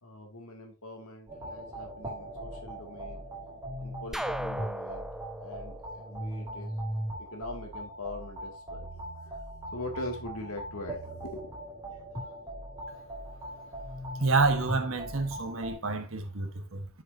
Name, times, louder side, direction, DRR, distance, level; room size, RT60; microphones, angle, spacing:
voice 1, 0.0-3.3 3.8-5.1 5.4-6.8 7.2-9.3 9.7-11.6 12.8-13.2, left 2 dB, 80° left, 2.1 m, -42 dB
sound 1, 1.3-15.7, right 1 dB, 20° right, 3.3 m, -39 dB
sound 2, 4.1-6.9, right 1 dB, ahead, 0.3 m, -38 dB
voice 2, 14.2-16.9, right 3 dB, 65° right, 1.2 m, -28 dB
7.6 x 6.5 x 2.6 m
head